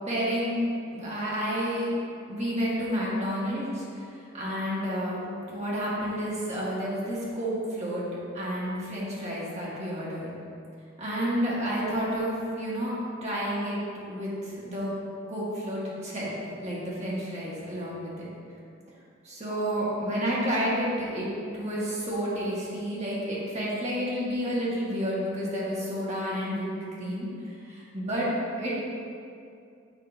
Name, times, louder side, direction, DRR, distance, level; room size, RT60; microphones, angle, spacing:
voice 1, 0.1-1.9 2.3-3.8 4.3-5.2 5.5-8.0 8.3-10.3 11.0-13.8 14.1-14.9 15.3-16.3 16.6-18.3 19.2-21.3 21.5-26.7 27.0-27.3 27.7-28.7, equal, 35° right, -6 dB, 1.4 m, -30 dB
7.3 x 2.7 x 5.4 m, 2.4 s
head